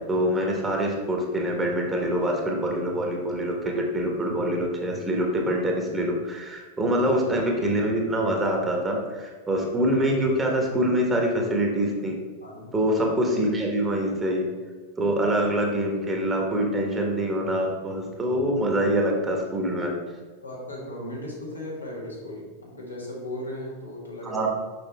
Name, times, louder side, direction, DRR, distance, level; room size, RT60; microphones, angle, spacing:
voice 1, 0.1-12.2 12.7-14.5 15.0-19.9 24.2-24.5, right 1 dB, 15° right, 0 dB, 1.4 m, -25 dB
voice 2, 12.4-12.7 20.4-24.5, left 1 dB, 80° left, -4 dB, 1.8 m, -36 dB
6.2 x 6.0 x 3.5 m, 1.4 s
figure-of-eight pair, 90°, 0 cm